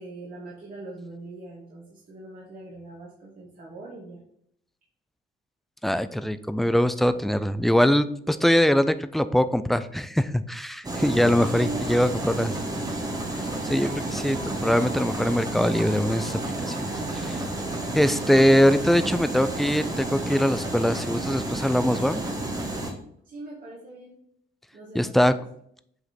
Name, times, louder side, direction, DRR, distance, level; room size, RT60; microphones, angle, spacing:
voice 1, 0.0-4.2 11.4-12.8 23.2-24.2 24.7-25.4, right 3 dB, 45° right, -5 dB, 1.7 m, -41 dB
voice 2, 5.8-12.5 13.6-14.4 14.6-17.4 17.9-22.2 24.9-25.3, equal, ahead, 12 dB, 0.3 m, -22 dB
sound 1, 10.8-22.9, right 2 dB, 20° right, 1.2 m, -31 dB
sound 2, 13.4-21.2, right 3 dB, 85° right, 1.1 m, -45 dB
7.8 x 3.0 x 4.2 m, 0.69 s
cardioid pair, 90°, 20 cm